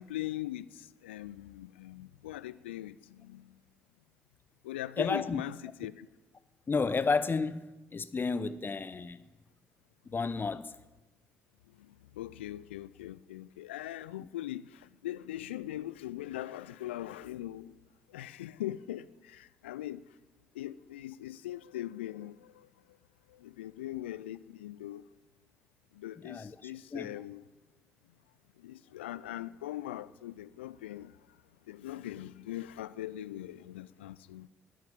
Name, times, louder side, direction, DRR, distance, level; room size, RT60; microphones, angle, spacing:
voice 1, 0.0-3.6 4.6-6.1 11.7-17.8 18.1-20.0 20.5-22.7 23.3-25.0 25.9-27.5 28.6-31.2 31.7-34.5, left 13 dB, 85° left, 0.4 m, -41 dB
voice 2, 5.0-5.4 6.7-7.6 7.9-9.2 10.1-10.7 14.2-14.3 26.2-27.1, left 4 dB, 35° left, 0.9 m, -32 dB
12.5 x 10.5 x 8.9 m
figure-of-eight pair, 45°, 6 cm